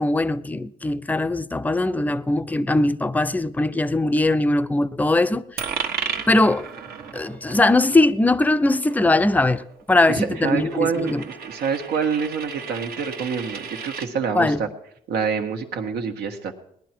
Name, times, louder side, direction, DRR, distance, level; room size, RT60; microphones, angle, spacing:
voice 1, 0.0-5.6 6.3-6.7 7.1-11.2 14.3-14.6, left 2 dB, 10° left, 0.5 m, -20 dB
Coin (dropping), 5.6-14.1, right 6 dB, 65° right, 1.4 m, -35 dB
voice 2, 10.1-14.7 15.1-16.5, right 6 dB, 80° right, 1.6 m, -26 dB
18.5 x 11.0 x 4.5 m
cardioid pair, 110°, 17 cm